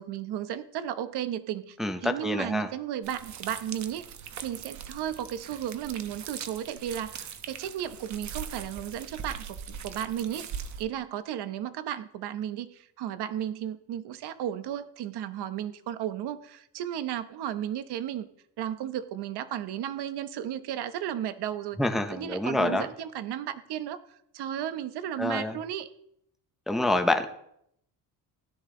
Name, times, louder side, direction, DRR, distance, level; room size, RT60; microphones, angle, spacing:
voice 1, 0.0-4.0 4.4-9.6 9.8-10.5 10.8-18.3 18.6-21.8 22.1-24.0 24.3-25.9, right 10 dB, 65° right, 12 dB, 1.0 m, -34 dB
voice 2, 1.8-2.7 21.8-22.9 25.2-25.5 26.7-27.3, left 2 dB, ahead, 6 dB, 0.6 m, -27 dB
sound 1, 3.0-10.8, right 7 dB, 40° right, 1.0 m, -41 dB
16.5 x 12.0 x 3.8 m, 0.72 s
cardioid pair, 165°, 43 cm